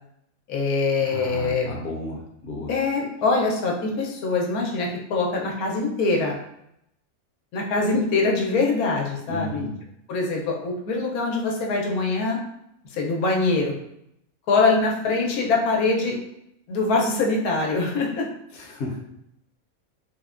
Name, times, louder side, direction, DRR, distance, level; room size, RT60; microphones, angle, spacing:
voice 1, 0.5-1.8 2.7-6.4 7.5-9.6 10.1-12.4 12.9-13.7 14.5-16.2 16.7-18.3, left 3 dB, 85° left, -1 dB, 1.1 m, -23 dB
voice 2, 1.0-2.7 9.3-9.7 18.5-19.0, left 1 dB, 55° left, -2 dB, 0.8 m, -33 dB
3.3 x 2.1 x 2.4 m, 0.79 s
omnidirectional pair, 1.5 m